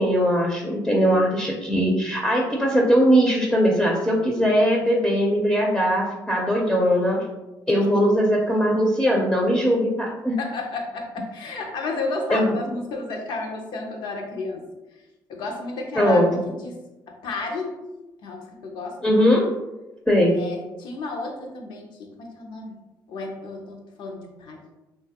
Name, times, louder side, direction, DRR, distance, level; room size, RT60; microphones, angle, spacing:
voice 1, 0.0-7.2 7.7-10.3 12.3-12.5 16.0-16.5 19.0-19.5 20.1-20.4, equal, 5° left, -2 dB, 0.5 m, -20 dB
voice 2, 10.4-14.6 15.3-16.8 17.1-17.8 18.2-19.0 20.3-22.7 23.1-24.6, left 3 dB, 75° left, 2 dB, 0.6 m, -32 dB
3.0 x 2.3 x 2.8 m, 1.0 s
supercardioid pair, 75°, 8 cm